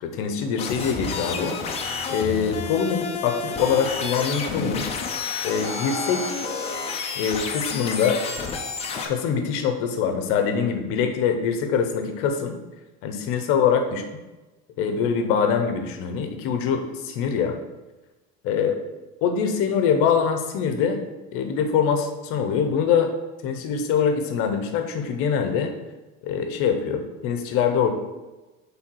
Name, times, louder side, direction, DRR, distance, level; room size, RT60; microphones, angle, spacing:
voice 1, 0.0-4.8 5.4-6.4 7.1-8.2 9.0-12.6 13.0-14.2 14.8-17.6 18.4-18.7 19.2-21.0 21.3-23.1 23.4-25.7 26.2-27.9, left 7 dB, 45° left, 6 dB, 0.9 m, -24 dB
sound 1, 0.6-9.0, left 5 dB, 20° left, 0.6 m, -30 dB
7.9 x 3.6 x 4.6 m, 1.1 s
cardioid pair, 170°, 31 cm